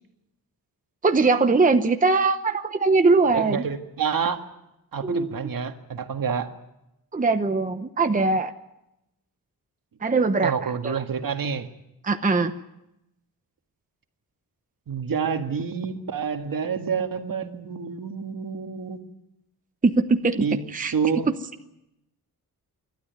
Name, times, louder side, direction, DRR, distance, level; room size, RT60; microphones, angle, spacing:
voice 1, 1.0-3.6 5.0-5.5 7.1-8.5 10.0-11.0 12.0-12.5 19.8-20.5 20.7-20.9, right 3 dB, 20° right, 7 dB, 0.9 m, -21 dB
voice 2, 3.3-4.4 4.9-6.5 10.4-11.7 14.9-19.0 20.4-20.6 20.9-21.3, right 6 dB, 60° right, 6 dB, 1.8 m, -28 dB
28.5 x 13.0 x 9.6 m, 0.88 s
wide cardioid pair, 160°, 38 cm